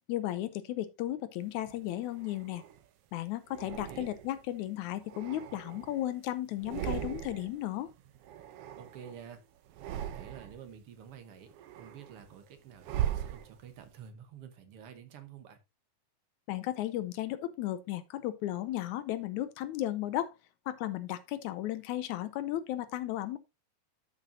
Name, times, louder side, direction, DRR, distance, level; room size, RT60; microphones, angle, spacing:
voice 1, 0.1-2.6 3.1-7.9 16.5-20.3 20.7-23.4, left 13 dB, 80° left, 1.9 m, -35 dB
sound 1, 1.6-2.8 3.5-4.5 4.9-6.2 6.5-7.6 7.9-9.3 9.7-10.7 11.2-13.9, right 10 dB, 80° right, 1.3 m, -39 dB
voice 2, 3.7-4.1 8.8-9.4 10.0-15.6, right 8 dB, 60° right, 1.8 m, -50 dB
12.5 x 5.8 x 2.7 m
omnidirectional pair, 3.6 m